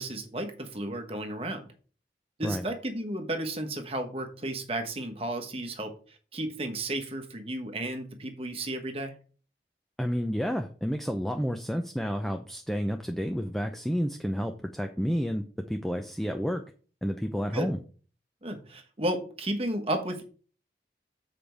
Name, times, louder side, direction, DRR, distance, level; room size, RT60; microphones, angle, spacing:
voice 1, 0.0-1.7 2.4-9.1 17.5-17.7 18.4-20.2, right 1 dB, 35° right, 6 dB, 1.2 m, -33 dB
voice 2, 10.0-16.6 17.0-17.8, equal, ahead, 5 dB, 0.5 m, -30 dB
7.5 x 5.0 x 4.6 m, 0.39 s
head